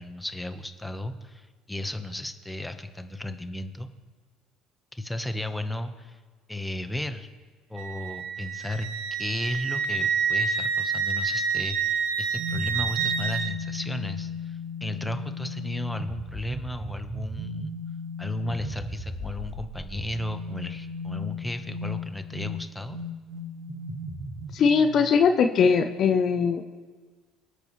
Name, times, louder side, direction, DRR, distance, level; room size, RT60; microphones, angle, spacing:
voice 1, 0.0-3.9 4.9-6.2 6.5-7.3 7.7-8.9 9.2-17.7 18.2-23.0, left 1 dB, 5° left, 8 dB, 1.2 m, -34 dB
Wind instrument woodwind instrument, 7.8-13.5, right 6 dB, 85° right, 0.9 m, -28 dB
sound 1, 12.3-25.2, left 2 dB, 25° right, 4.4 m, -36 dB
voice 2, 24.5-26.6, left 6 dB, 55° left, 8 dB, 0.7 m, -21 dB
24.5 x 8.3 x 3.3 m, 1.4 s
supercardioid pair, 75°, 0 cm